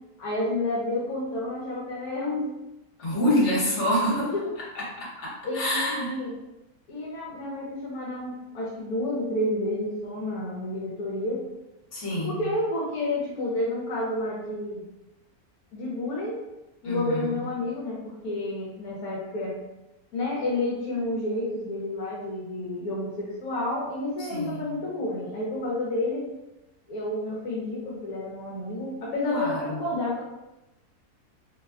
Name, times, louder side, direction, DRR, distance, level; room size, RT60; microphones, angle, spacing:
voice 1, 0.2-2.5 4.1-4.4 5.4-6.4 6.9-11.4 12.2-14.8 15.7-16.4 16.8-19.6 20.1-26.3 26.9-30.2, left 1 dB, 80° left, -5 dB, 1.1 m, -30 dB
voice 2, 3.0-4.3 4.7-6.2 11.9-12.3 16.8-17.4 24.2-24.6 29.3-29.8, equal, 55° left, -5 dB, 1.3 m, -27 dB
2.9 x 2.1 x 3.4 m, 0.97 s
omnidirectional pair, 1.6 m